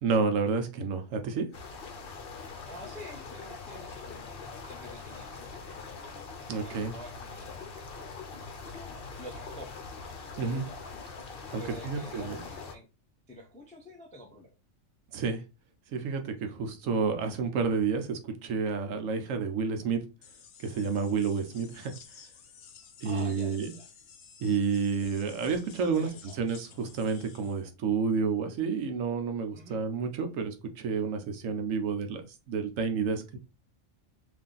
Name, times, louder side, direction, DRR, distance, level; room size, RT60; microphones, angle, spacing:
voice 1, 0.0-1.5 6.5-6.9 10.4-10.6 11.5-12.4 15.1-15.4 15.9-20.0 20.6-21.9 23.0-23.7 24.4-26.1 26.4-33.4, right 5 dB, 70° right, 1.0 m, -30 dB
sound 1, 1.5-12.7, left 4 dB, 50° left, 0.7 m, -43 dB
voice 2, 2.7-4.4 4.7-5.8 6.6-7.7 8.7-9.8 10.3-10.7 11.6-12.9 13.3-14.5 23.0-23.9 26.0-26.4 29.5-29.8, equal, 10° left, 0.3 m, -48 dB
sound 2, 20.2-27.6, left 6 dB, 90° left, 1.2 m, -53 dB
3.3 x 2.5 x 3.8 m
omnidirectional pair, 1.5 m